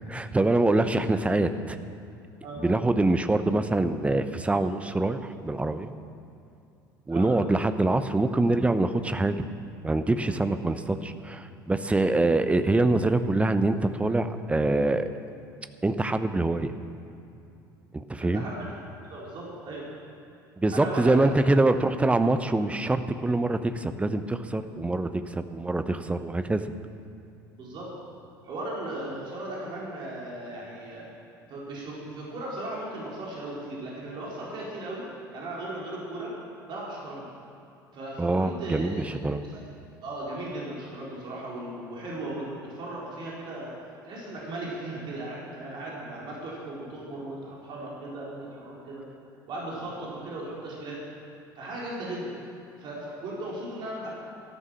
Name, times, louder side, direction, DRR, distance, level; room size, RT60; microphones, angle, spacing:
voice 1, 0.1-1.8 2.6-5.9 7.1-9.5 9.8-15.1 15.8-16.7 17.9-18.4 20.6-26.7 38.2-39.4, right 2 dB, 10° right, 10 dB, 0.8 m, -25 dB
voice 2, 18.2-18.7 19.1-19.9 20.7-21.3 27.6-27.9 28.4-31.1 31.5-35.0 35.3-36.3 36.7-37.3 37.9-39.1 39.5-39.6 40.0-43.7 44.1-49.0 49.5-51.0 51.6-52.3 52.8-54.1, right 1 dB, 45° right, -5 dB, 4.2 m, -37 dB
13.5 x 11.5 x 7.4 m, 2.6 s
figure-of-eight pair, 65°, 11 cm